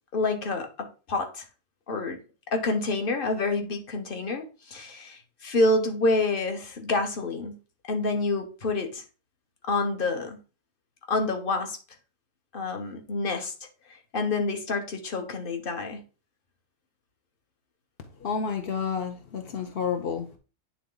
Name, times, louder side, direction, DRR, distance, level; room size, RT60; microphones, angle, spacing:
voice 1, 0.1-1.4 1.9-2.2 2.5-7.5 7.9-9.0 9.7-10.4 11.1-11.8 12.5-13.5 14.1-16.0, left 3 dB, 40° left, 0.8 m, -28 dB
voice 2, 18.2-20.3, left 6 dB, 65° left, 0.5 m, -30 dB
9.4 x 3.6 x 3.8 m
omnidirectional pair, 2.0 m